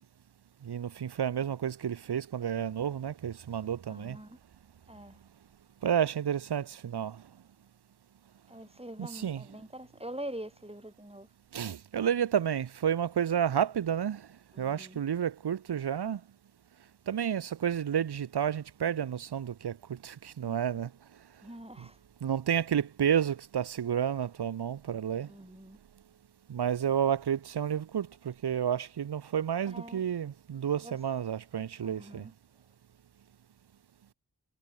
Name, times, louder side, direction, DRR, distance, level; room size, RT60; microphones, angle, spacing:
voice 1, 0.7-4.2 5.8-7.2 9.0-9.4 11.5-14.2 14.6-16.2 17.1-19.8 20.0-20.9 22.2-25.3 26.5-32.2, right 8 dB, 90° right, 0.6 m, -30 dB
voice 2, 3.9-4.4 4.9-5.2 8.5-11.3 14.5-15.0 21.4-22.0 25.3-25.8 29.7-30.0 30.8-31.0 31.8-32.3, right 1 dB, 15° right, 4.2 m, -44 dB
wide cardioid pair, 40°, 38 cm